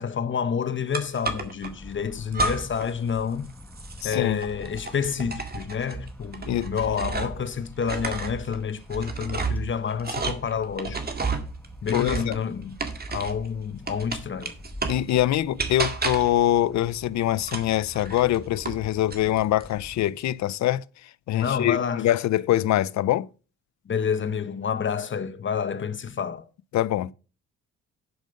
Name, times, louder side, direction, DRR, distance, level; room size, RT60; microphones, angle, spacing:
voice 1, 0.0-3.5 4.0-11.0 11.8-12.8 13.1-14.5 21.3-22.1 23.9-26.5, left 7 dB, 40° left, 1.0 m, -29 dB
sound 1, 0.9-1.7 2.3-2.9 3.2-7.5 7.8-13.5 13.9-15.1 15.6-16.4 17.4-18.8 19.1-19.7, right 3 dB, 30° right, 2.0 m, -32 dB
sound 2, 1.6-20.1, left 1 dB, 5° left, 1.3 m, -46 dB
voice 2, 4.0-4.4 6.5-6.7 11.9-12.4 14.9-20.8 21.3-23.3 26.7-27.1, left 13 dB, 65° left, 0.6 m, -24 dB
11.5 x 5.2 x 5.2 m
cardioid pair, 90°, 30 cm